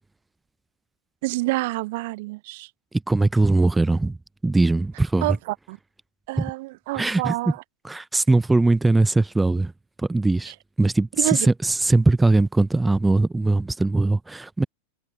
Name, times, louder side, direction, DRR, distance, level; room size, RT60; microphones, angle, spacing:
voice 1, 1.2-2.7 5.2-5.8 6.3-7.6 11.2-11.5, right 22 dB, 50° right, 0.8 m, -27 dB
voice 2, 2.9-4.2 4.4-5.4 6.4-6.5 6.9-7.3 7.8-9.7 10.0-14.6, right 2 dB, 5° right, 0.9 m, -20 dB
figure-of-eight pair, 90°, 0 cm